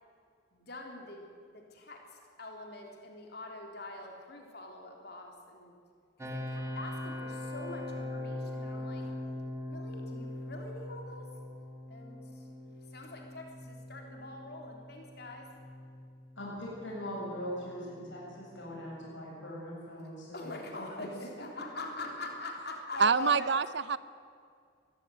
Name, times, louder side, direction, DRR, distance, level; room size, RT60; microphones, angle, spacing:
voice 1, 0.5-5.8 6.2-9.1 9.7-11.3 11.9-15.5 20.3-23.5, left 2 dB, 55° left, 2 dB, 3.6 m, -44 dB
sound 1, 6.2-19.0, left 1 dB, 15° right, 1.8 m, -42 dB
voice 2, 16.4-20.9, equal, 70° left, -4 dB, 7.3 m, -41 dB
voice 3, 23.0-24.0, right 5 dB, 60° right, 16 dB, 0.7 m, -26 dB
22.0 x 15.5 x 9.4 m, 2.2 s
head